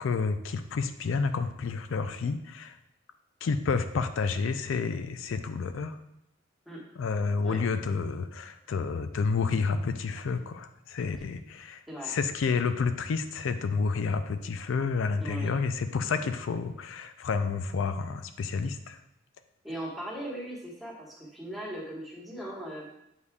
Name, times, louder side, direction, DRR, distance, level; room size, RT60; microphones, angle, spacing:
voice 1, 0.0-2.8 3.4-6.0 7.0-19.0, left 4 dB, 85° left, 9 dB, 0.4 m, -30 dB
voice 2, 15.2-15.5 19.6-22.9, right 1 dB, ahead, -6 dB, 1.4 m, -39 dB
8.0 x 5.3 x 2.3 m, 0.84 s
head